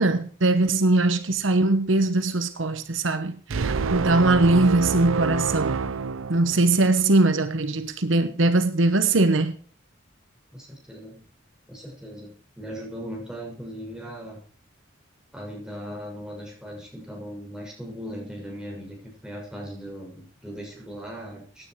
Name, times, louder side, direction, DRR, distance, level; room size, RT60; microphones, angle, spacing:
voice 1, 0.0-5.8 6.3-9.6, right 2 dB, 75° right, 1.1 m, -21 dB
sound 1, 3.5-7.0, right 5 dB, 90° right, 0.6 m, -27 dB
voice 2, 10.5-11.2 11.7-14.4 15.3-21.7, equal, 5° right, 6.5 m, -38 dB
16.5 x 10.0 x 4.7 m
head